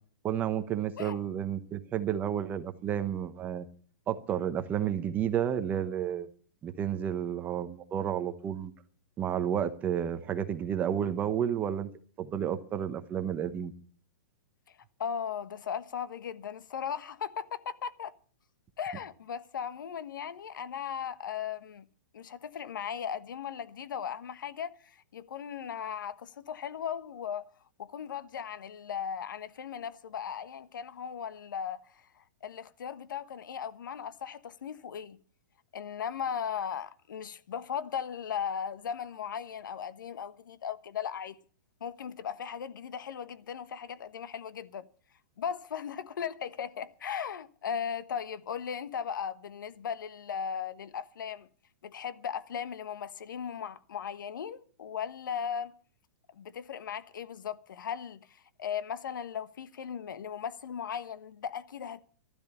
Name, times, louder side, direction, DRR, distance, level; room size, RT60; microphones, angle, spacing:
voice 1, 0.2-3.7 4.1-6.3 6.6-8.7 9.2-11.9 12.2-13.7, right 9 dB, 15° right, 0.9 m, -31 dB
voice 2, 15.0-18.1 18.8-21.9 22.1-27.5 27.8-32.0 32.4-35.2 35.7-41.4 41.8-44.9 45.4-51.5 51.8-55.7 56.3-58.3 58.6-62.0, left 8 dB, 75° left, 1.2 m, -37 dB
12.5 x 12.0 x 6.9 m
hypercardioid pair, 165°, 11 cm